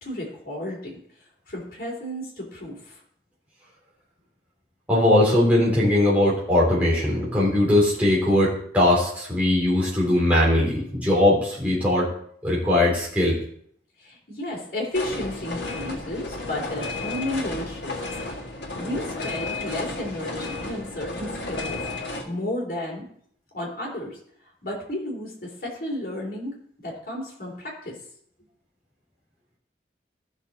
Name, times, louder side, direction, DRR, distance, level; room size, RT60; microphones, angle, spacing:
voice 1, 0.0-1.0 1.5-3.0 14.0-17.9 18.3-23.1 23.5-24.2 24.6-28.0, left 1 dB, 50° left, -1 dB, 3.4 m, -33 dB
voice 2, 4.9-12.1 12.4-13.4, left 1 dB, 10° right, -6 dB, 3.7 m, -20 dB
sound 1, 14.9-22.2, left 2 dB, 85° left, 2.0 m, -32 dB
14.5 x 6.5 x 4.1 m, 0.65 s
head